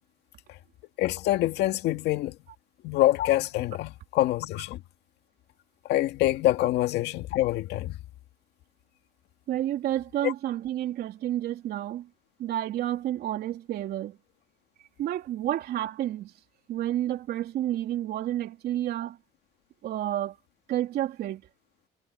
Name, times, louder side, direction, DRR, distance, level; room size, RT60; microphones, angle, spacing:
voice 1, 1.0-2.4 2.8-4.8 5.9-8.0 10.2-10.3, left 15 dB, 80° left, 2.0 m, -25 dB
voice 2, 9.5-12.1 12.4-14.2 15.0-16.3 16.7-19.2 19.8-20.4 20.7-21.5, right 12 dB, 70° right, 3.2 m, -30 dB
cardioid pair, 110°, 17 cm